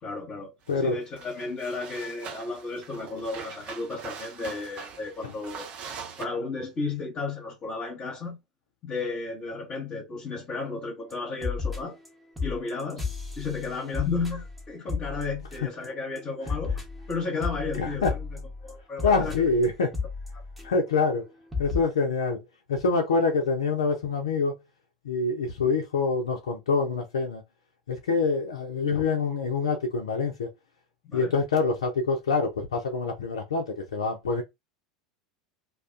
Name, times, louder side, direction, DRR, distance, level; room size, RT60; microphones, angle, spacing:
voice 1, 0.0-5.7 6.2-8.4 8.8-12.0 12.4-13.1 13.4-18.3 18.6-19.3 31.0-31.4, left 4 dB, 35° left, 0.9 m, -33 dB
sound 1, 0.7-0.8 1.2-6.3, right 6 dB, 40° right, 0.5 m, -42 dB
sound 2, 11.1-11.2 11.4-12.1 12.4-15.9 16.2-20.9 21.2-21.3 21.5-21.8, left 4 dB, ahead, 0.9 m, -33 dB
voice 2, 17.8-18.1 19.0-19.9 20.6-21.3 21.6-22.4 22.7-24.6 25.0-27.4 27.9-30.5 31.1-34.4, left 4 dB, 75° left, 0.4 m, -26 dB
2.3 x 2.2 x 2.4 m
figure-of-eight pair, 80°, 3 cm